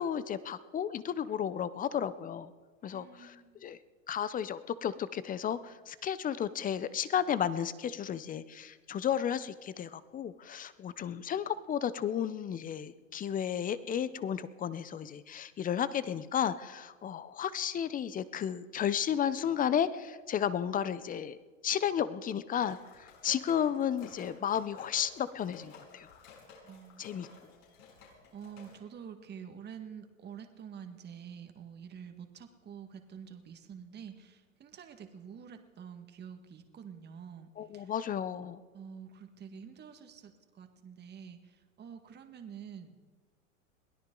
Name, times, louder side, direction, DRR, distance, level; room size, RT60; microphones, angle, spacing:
voice 1, 0.0-2.5 2.8-3.4 3.6-3.8 4.1-21.4 21.6-26.1 27.0-27.3 37.6-38.6, left 9 dB, 20° left, 15 dB, 0.6 m, -33 dB
voice 2, 2.9-3.7 26.6-27.0 27.4-27.8 28.3-37.9 38.7-42.9, right 7 dB, 25° right, 6 dB, 1.7 m, -48 dB
sound 1, 22.7-28.8, left 5 dB, 75° left, 6.9 m, -54 dB
22.5 x 17.0 x 3.8 m, 1.4 s
hypercardioid pair, 110°, 39 cm